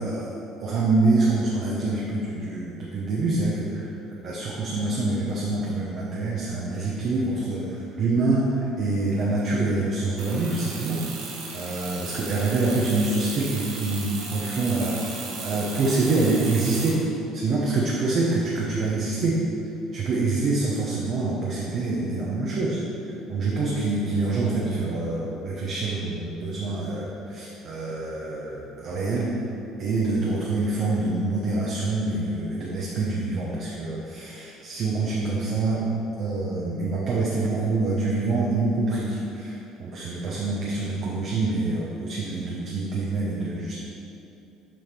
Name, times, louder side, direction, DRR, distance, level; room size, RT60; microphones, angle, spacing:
voice 1, 0.0-3.9 4.2-11.0 11.5-15.0 15.4-17.0 17.3-19.4 19.9-22.8 23.3-29.3 29.8-35.8 36.2-43.8, right 3 dB, 55° right, -4 dB, 1.0 m, -26 dB
sound 1, 10.2-16.9, right 4 dB, 75° right, 1.2 m, -36 dB
7.6 x 5.0 x 4.5 m, 2.8 s
hypercardioid pair, 60°, 0 cm